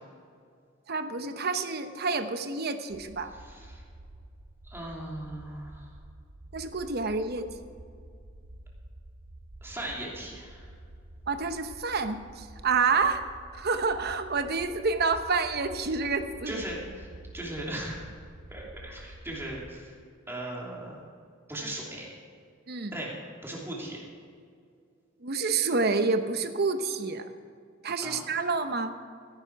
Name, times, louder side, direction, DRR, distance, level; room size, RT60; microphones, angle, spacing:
voice 1, 0.9-3.3 6.5-7.5 11.3-13.3 13.5-16.6 22.7-22.9 25.2-27.3 27.8-28.9, right 4 dB, 50° right, 9 dB, 0.9 m, -28 dB
sound 1, 2.9-19.7, right 1 dB, 85° right, 1.1 m, -49 dB
voice 2, 3.3-3.8 4.6-5.9 9.6-10.7 16.5-17.1 17.3-18.0 18.5-20.0 20.3-21.0 21.5-22.1 22.9-23.1 23.4-24.0 28.0-28.2, right 1 dB, 10° right, -3 dB, 2.9 m, -38 dB
16.0 x 10.5 x 4.6 m, 2.2 s
head